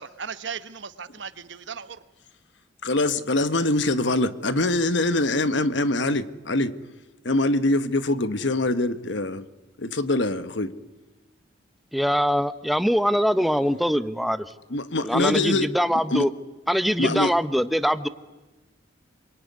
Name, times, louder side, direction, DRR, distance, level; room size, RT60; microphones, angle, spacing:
voice 1, 0.0-2.0, right 6 dB, 65° right, 1.1 m, -37 dB
voice 2, 2.8-6.8 7.2-9.4 9.8-10.7 14.7-15.7 16.1-16.3 17.0-17.3, left 2 dB, 65° left, 1.2 m, -24 dB
voice 3, 11.9-14.4 15.0-16.3 16.7-18.1, equal, ahead, 0.8 m, -23 dB
26.0 x 23.5 x 9.6 m
head